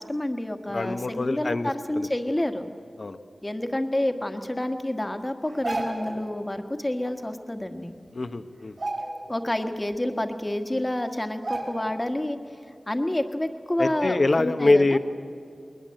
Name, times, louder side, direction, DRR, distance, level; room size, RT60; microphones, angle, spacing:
voice 1, 0.0-2.7 3.4-7.9 9.3-12.4 12.9-15.0, left 1 dB, 20° left, 6 dB, 1.5 m, -29 dB
voice 2, 0.7-1.7 2.0-2.1 3.0-3.2 8.1-8.8 13.8-15.0, left 2 dB, 55° left, 10 dB, 1.0 m, -24 dB
sound 1, 5.5-6.2 7.6-7.7 8.1-8.3 8.7-9.5 9.9-10.0 10.8-10.9 11.4-12.1 12.4-12.6, right 2 dB, 60° right, 5.1 m, -32 dB
21.0 x 20.5 x 7.7 m, 2.5 s
wide cardioid pair, 60°, 0 cm